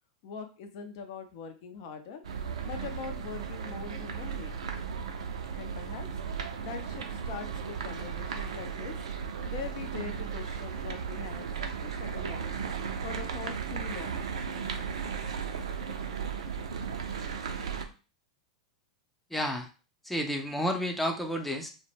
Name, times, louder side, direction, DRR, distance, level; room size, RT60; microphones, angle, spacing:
voice 1, 0.2-2.2 2.6-4.5 5.5-6.1 6.6-8.9 9.4-12.6 13.0-14.2, left 6 dB, 55° left, 6 dB, 0.5 m, -42 dB
sound 1, 2.2-17.9, right 6 dB, 70° right, 0.4 m, -35 dB
voice 2, 19.3-19.7 20.0-21.7, equal, 5° left, 3 dB, 0.4 m, -31 dB
2.1 x 2.1 x 3.1 m, 0.34 s
hypercardioid pair, 100°, 3 cm